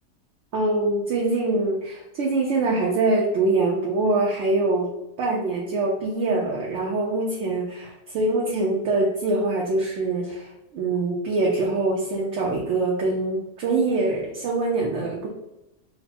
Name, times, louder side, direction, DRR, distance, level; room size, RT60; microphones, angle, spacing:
voice 1, 0.5-4.9 5.2-15.3, right 2 dB, 60° right, -3 dB, 0.9 m, -24 dB
3.1 x 2.1 x 4.2 m, 0.92 s
omnidirectional pair, 1.7 m